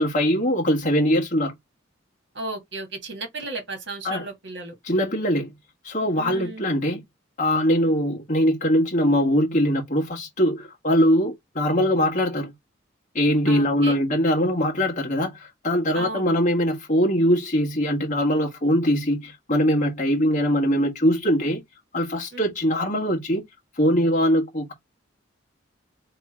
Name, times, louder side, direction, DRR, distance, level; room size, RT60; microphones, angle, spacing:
voice 1, 0.0-1.5 4.0-4.2 4.9-5.6 5.8-7.0 7.4-12.5 13.1-21.6 21.9-23.4 23.8-24.7, equal, 40° left, 1.5 m, -22 dB
voice 2, 2.3-4.7 6.2-6.7 13.5-14.0 15.9-16.4 22.3-22.4, right 2 dB, 60° right, 1.8 m, -34 dB
3.7 x 3.2 x 4.3 m
head